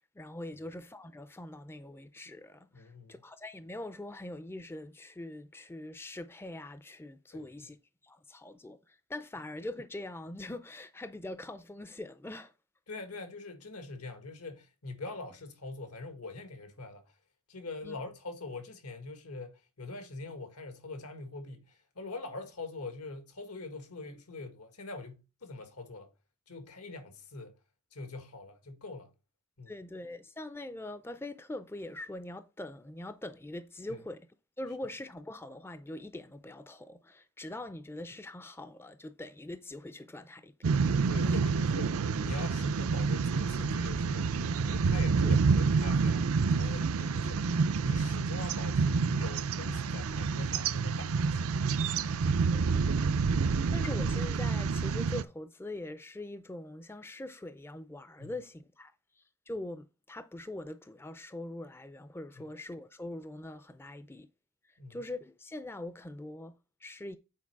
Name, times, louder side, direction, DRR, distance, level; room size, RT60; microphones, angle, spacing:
voice 1, 0.0-7.8 8.0-12.5 17.8-18.0 29.7-34.2 34.6-40.7 41.2-41.4 45.2-45.3 52.5-52.7 53.7-58.9 59.2-64.3 64.9-67.2, left 1 dB, 10° left, 0.4 m, -43 dB
voice 2, 2.7-3.1 7.3-7.7 12.9-17.1 17.5-26.1 26.5-27.5 27.9-29.1 29.6-29.7 33.9-34.0 41.1-47.5 47.8-51.7 58.2-58.3 62.4-62.5 64.8-65.0, left 3 dB, 85° left, 1.8 m, -43 dB
sound 1, 40.6-55.2, right 5 dB, 65° right, 0.5 m, -28 dB
8.5 x 4.4 x 4.6 m
head